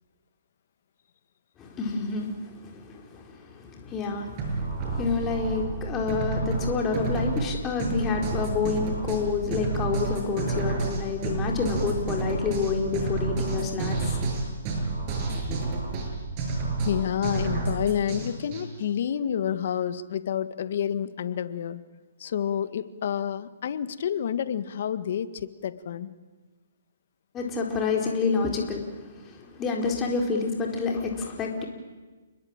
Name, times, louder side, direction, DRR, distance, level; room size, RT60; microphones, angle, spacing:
voice 1, 1.6-14.3 27.3-31.7, left 4 dB, 15° left, 1 dB, 4.3 m, -29 dB
sound 1, 4.4-18.6, right 3 dB, 30° right, 7.3 m, -30 dB
voice 2, 16.8-21.8 22.2-26.1, left 9 dB, 55° left, 12 dB, 1.7 m, -29 dB
30.0 x 21.5 x 9.0 m, 1.3 s
hypercardioid pair, 155°, 0 cm